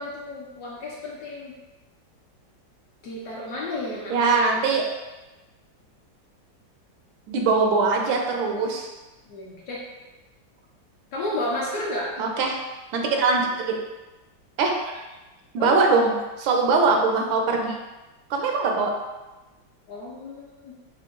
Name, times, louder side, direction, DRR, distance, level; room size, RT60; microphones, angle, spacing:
voice 1, 0.0-1.5 3.0-4.3 9.3-9.8 11.1-12.1 15.6-16.0 19.9-20.7, left 1 dB, 70° left, -4 dB, 1.0 m, -32 dB
voice 2, 4.1-4.8 7.3-8.9 12.2-12.6 12.9-13.8 14.6-15.0 15.5-17.8 18.3-18.9, right 4 dB, 85° right, 1 dB, 1.4 m, -22 dB
5.7 x 2.1 x 2.4 m, 1.1 s
omnidirectional pair, 2.1 m